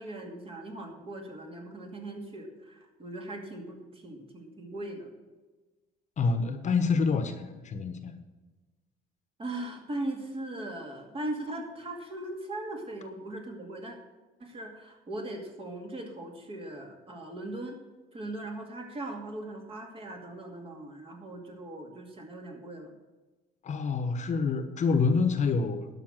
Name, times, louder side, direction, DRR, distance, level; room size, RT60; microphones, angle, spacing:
voice 1, 0.0-5.1 9.4-14.0 14.4-17.8 18.1-22.9, right 1 dB, 35° right, 2 dB, 2.4 m, -39 dB
voice 2, 6.2-8.1 23.6-25.9, left 4 dB, 45° left, 8 dB, 1.1 m, -27 dB
12.0 x 5.9 x 7.6 m, 1.2 s
cardioid pair, 110°, 17 cm